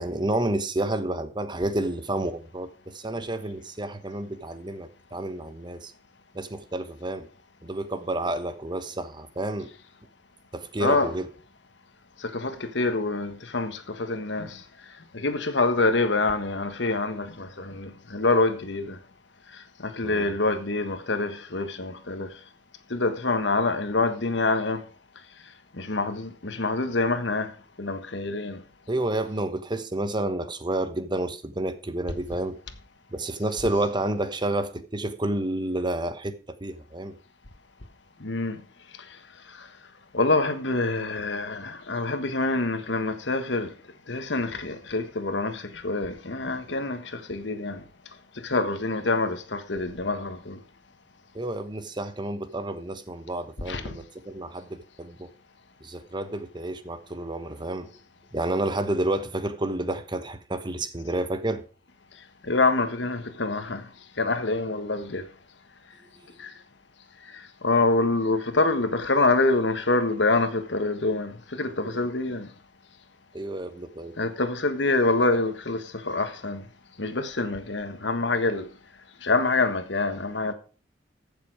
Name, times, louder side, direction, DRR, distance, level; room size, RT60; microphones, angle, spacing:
voice 1, 0.0-5.9 6.3-7.2 7.6-9.7 10.5-11.3 20.0-20.3 28.9-32.6 33.1-36.3 36.6-37.1 51.3-55.3 55.8-57.9 58.3-61.6 71.8-71.9 73.3-74.1, right 1 dB, 25° right, 1.1 m, -30 dB
voice 2, 10.8-11.1 12.2-14.6 15.1-19.0 19.8-22.3 22.9-24.8 25.8-27.5 27.8-28.6 38.2-38.6 40.1-43.7 44.1-47.8 48.4-50.6 53.7-54.0 62.5-63.8 64.2-65.2 66.4-66.5 67.6-72.5 74.2-76.6 77.0-78.7 79.2-80.5, left 3 dB, 70° left, 1.5 m, -26 dB
14.5 x 6.9 x 4.9 m
head